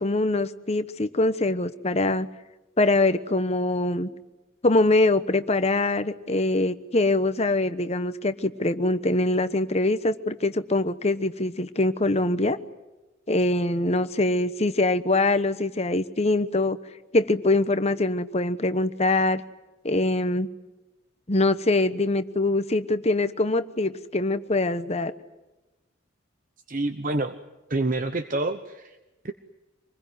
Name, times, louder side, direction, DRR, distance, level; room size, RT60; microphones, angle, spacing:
voice 1, 0.0-2.3 2.8-4.1 4.6-12.6 13.3-16.8 17.1-19.4 19.8-20.5 21.3-25.1, left 2 dB, 35° left, 11 dB, 1.1 m, -23 dB
voice 2, 26.7-27.4 27.7-29.0 29.2-29.3, right 2 dB, 40° right, 9 dB, 1.0 m, -27 dB
26.5 x 21.0 x 9.5 m, 1.1 s
head